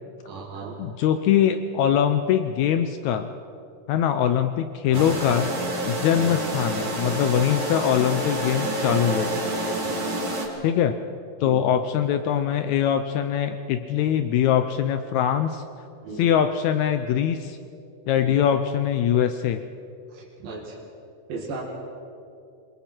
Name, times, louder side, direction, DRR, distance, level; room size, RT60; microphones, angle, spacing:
voice 1, 0.3-0.8 4.9-5.2 6.1-6.3 9.8-10.1 11.4-11.7 16.0-16.3 18.2-18.4 20.1-20.8 21.3-21.6, right 4 dB, 75° right, -4 dB, 3.9 m, -37 dB
voice 2, 0.8-3.3 3.9-5.5 5.9-9.4 10.6-10.9 11.4-15.6 16.1-17.6 18.1-19.6, left 9 dB, 85° left, 8 dB, 1.6 m, -22 dB
sound 1, 4.9-10.5, right 1 dB, 35° right, 3.2 m, -28 dB
27.5 x 22.0 x 4.5 m, 2.6 s
omnidirectional pair, 4.1 m